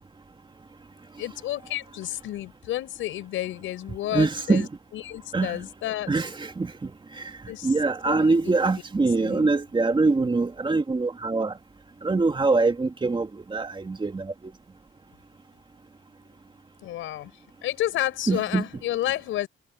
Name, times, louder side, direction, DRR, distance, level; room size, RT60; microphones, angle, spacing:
voice 1, 1.2-4.7 4.9-6.1 7.5-7.7 8.0-8.6 9.2-9.5 16.8-17.3 17.6-19.5, left 14 dB, 85° left, 5.5 m, -31 dB
voice 2, 4.1-4.7 5.3-5.6 6.1-6.9 7.6-11.5 12.0-14.3 18.3-18.6, right 3 dB, 25° right, 2.3 m, -24 dB
cardioid pair, 90°, 20 cm